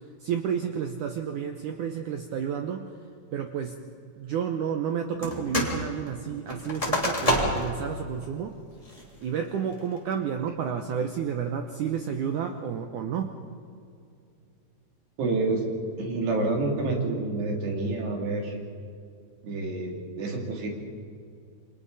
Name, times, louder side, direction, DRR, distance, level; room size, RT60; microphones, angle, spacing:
voice 1, 0.2-2.9 3.3-3.8 4.2-8.6 9.2-13.4, right 7 dB, 90° right, 5 dB, 1.7 m, -31 dB
sound 1, 5.2-5.8 6.1-7.8 8.2-8.3 8.8-9.2 9.7-10.1, equal, 10° left, 2.6 m, -27 dB
voice 2, 15.2-15.6 16.0-18.6 19.4-20.7, right 3 dB, 70° right, 0 dB, 5.1 m, -28 dB
29.0 x 25.0 x 4.1 m, 2.4 s
omnidirectional pair, 5.0 m